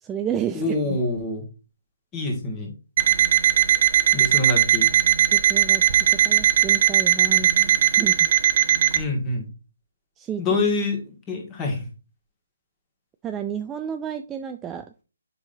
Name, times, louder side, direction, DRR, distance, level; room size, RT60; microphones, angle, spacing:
voice 1, 0.0-1.0 5.3-5.8 6.1-8.3 10.2-10.4 13.2-14.9, right 8 dB, 15° right, 7 dB, 0.3 m, -31 dB
voice 2, 0.5-1.4 2.1-2.7 4.1-4.9 8.9-9.5 10.4-11.0 11.3-11.8, left 2 dB, 20° left, 1 dB, 2.0 m, -25 dB
Alarm, 3.0-9.0, right 11 dB, 40° right, 0.7 m, -19 dB
7.0 x 5.4 x 2.8 m, 0.33 s
figure-of-eight pair, 145°, 0 cm